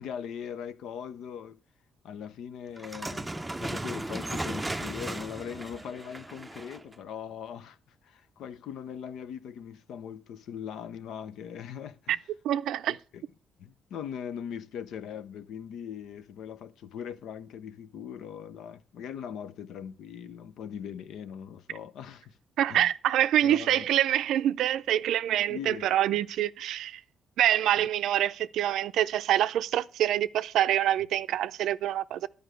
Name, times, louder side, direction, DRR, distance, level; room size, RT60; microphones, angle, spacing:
voice 1, 0.0-1.6 2.0-12.2 12.9-13.2 13.6-22.4 22.7-22.9 23.4-23.9 25.5-26.2 27.8-27.9, left 8 dB, 80° left, 0.6 m, -40 dB
sound 1, 2.8-6.9, right 2 dB, 10° right, 0.5 m, -36 dB
voice 2, 12.4-13.0 22.6-27.0 27.4-32.3, right 11 dB, 80° right, 0.4 m, -26 dB
11.0 x 5.1 x 7.9 m
cardioid pair, 90°, 0 cm